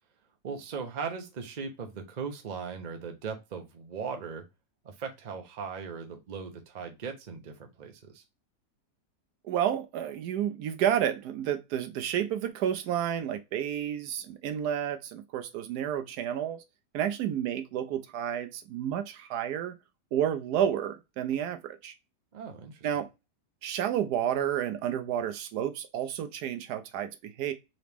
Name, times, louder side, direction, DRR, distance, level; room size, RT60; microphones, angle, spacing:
voice 1, 0.4-4.5 4.8-8.2 22.3-22.9, right 5 dB, 45° right, 0.5 m, -38 dB
voice 2, 9.4-16.6 16.9-19.8 20.1-21.9 22.8-23.1 23.6-27.5, right 10 dB, 75° right, 1.1 m, -30 dB
4.0 x 2.9 x 3.4 m
omnidirectional pair, 1.8 m